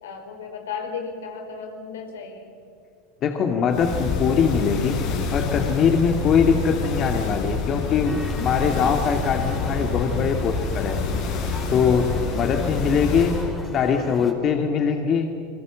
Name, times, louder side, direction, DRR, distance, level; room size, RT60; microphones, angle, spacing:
voice 1, 0.0-2.5, left 5 dB, 75° left, 4 dB, 4.5 m, -34 dB
voice 2, 3.2-5.0 5.3-11.0 11.7-13.5 13.7-15.3, left 6 dB, 40° left, 4 dB, 2.2 m, -22 dB
sound 1, 3.7-13.5, left 4 dB, 55° left, 7.1 m, -27 dB
sound 2, 8.0-14.3, left 1 dB, 5° left, 4.1 m, -40 dB
29.0 x 22.5 x 7.6 m, 2.4 s
hypercardioid pair, 85°, 0 cm